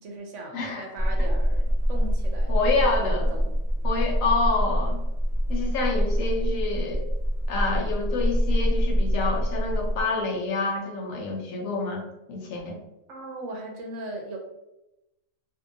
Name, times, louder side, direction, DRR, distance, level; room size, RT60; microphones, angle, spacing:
voice 1, 0.0-3.6 13.1-14.4, right 2 dB, 70° right, 1 dB, 0.8 m, -38 dB
voice 2, 0.5-0.9 2.5-3.3 3.8-5.0 5.5-7.0 7.5-12.8, left 3 dB, 70° left, 0 dB, 1.1 m, -28 dB
sound 1, 1.0-10.0, equal, 25° left, 1.1 m, -25 dB
2.7 x 2.6 x 2.5 m, 0.92 s
omnidirectional pair, 1.5 m